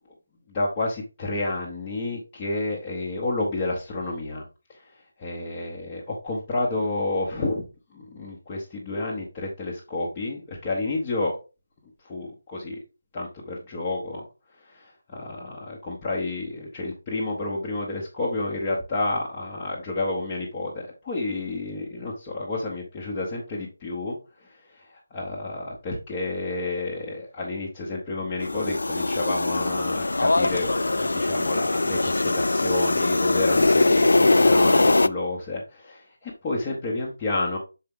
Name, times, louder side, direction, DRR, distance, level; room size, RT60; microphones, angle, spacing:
voice 1, 0.5-4.4 4.7-4.8 5.2-7.6 7.9-11.4 12.0-12.8 13.1-14.2 14.7-24.2 24.7-24.8 25.1-37.6, left 2 dB, 10° left, -5 dB, 0.8 m, -30 dB
sound 1, 28.4-35.1, left 2 dB, 75° left, 0.4 m, -21 dB
6.9 x 4.3 x 3.6 m, 0.30 s
figure-of-eight pair, 180°, 0 cm